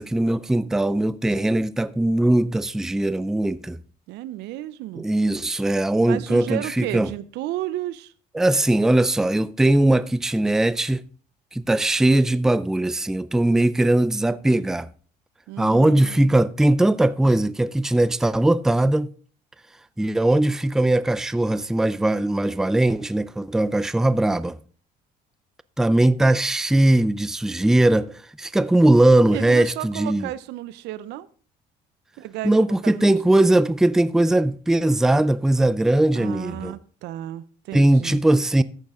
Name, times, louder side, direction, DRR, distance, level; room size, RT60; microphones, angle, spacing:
voice 1, 0.0-3.8 5.0-7.1 8.3-11.0 11.5-14.9 15.6-19.1 20.0-24.6 25.8-30.3 32.4-36.8 37.7-38.6, right 1 dB, 5° right, 0.3 m, -20 dB
voice 2, 4.1-5.0 6.0-8.1 15.5-16.4 29.3-31.3 32.2-32.5 32.8-33.2 36.1-38.2, right 14 dB, 85° right, 0.6 m, -33 dB
13.5 x 6.6 x 3.7 m
cardioid pair, 110°, 17 cm